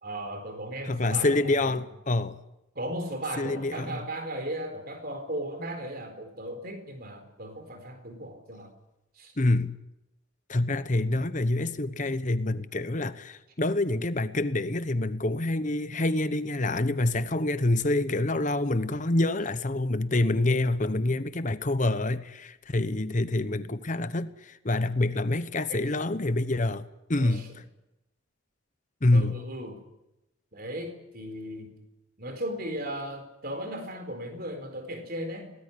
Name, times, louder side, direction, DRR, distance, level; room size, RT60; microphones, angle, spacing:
voice 1, 0.0-1.8 2.7-8.7 9.2-9.3 25.7-25.8 27.2-27.5 29.1-29.8 30.5-31.8 32.2-35.5, right 1 dB, 45° right, 7 dB, 4.2 m, -36 dB
voice 2, 0.8-2.4 3.4-4.0 9.4-9.8 10.5-27.5 29.0-29.4, left 2 dB, 35° left, 13 dB, 0.9 m, -27 dB
23.0 x 18.5 x 9.9 m, 0.94 s
head